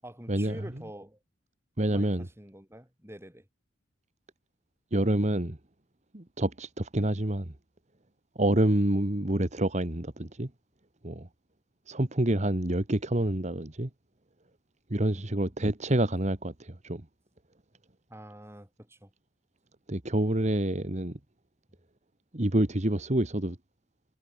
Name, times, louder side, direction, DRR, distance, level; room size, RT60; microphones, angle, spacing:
voice 1, 0.0-1.2 1.9-3.5 15.0-15.5 18.1-19.1, right 1 dB, 15° right, 7.2 m, -46 dB
voice 2, 1.8-2.3 4.9-5.6 6.1-7.5 8.4-10.5 11.0-11.3 11.9-13.9 14.9-17.0 19.9-21.2 22.3-23.6, right 1 dB, 35° right, 1.6 m, -27 dB
head